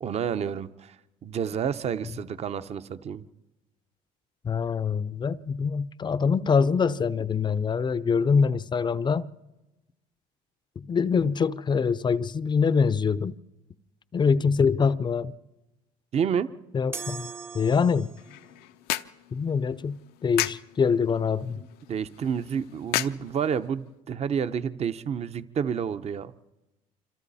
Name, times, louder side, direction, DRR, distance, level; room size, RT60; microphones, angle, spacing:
voice 1, 0.0-1.0 1.2-3.3 16.1-16.5 21.6-26.3, right 7 dB, 40° right, 0.9 m, -29 dB
voice 2, 4.4-9.3 10.8-13.3 14.1-15.3 16.7-17.3 17.5-18.1 19.3-21.6, left 5 dB, 30° left, 0.6 m, -24 dB
sound 1, 16.9-18.4, right 4 dB, 15° right, 0.9 m, -39 dB
sound 2, 18.0-23.9, left 15 dB, 75° left, 0.7 m, -36 dB
26.5 x 26.0 x 4.2 m
supercardioid pair, 100°, 16 cm